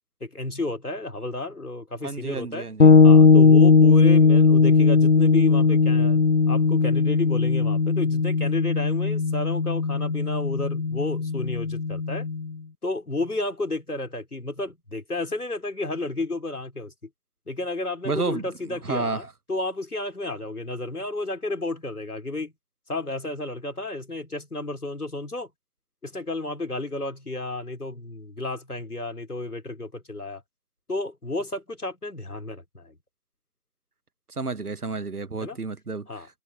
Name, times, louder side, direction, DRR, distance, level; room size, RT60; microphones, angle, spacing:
voice 1, 0.2-2.7 3.0-6.2 6.5-12.3 12.8-16.9 17.5-22.5 22.9-25.5 26.0-30.4 30.9-32.9 35.4-35.6 36.1-36.3, left 2 dB, 75° left, 3.6 m, -32 dB
voice 2, 2.0-2.9 18.0-19.3 34.3-36.3, right 4 dB, 75° right, 1.3 m, -31 dB
sound 1, 2.8-12.5, left 4 dB, 55° left, 0.5 m, -18 dB
figure-of-eight pair, 165°, 45 cm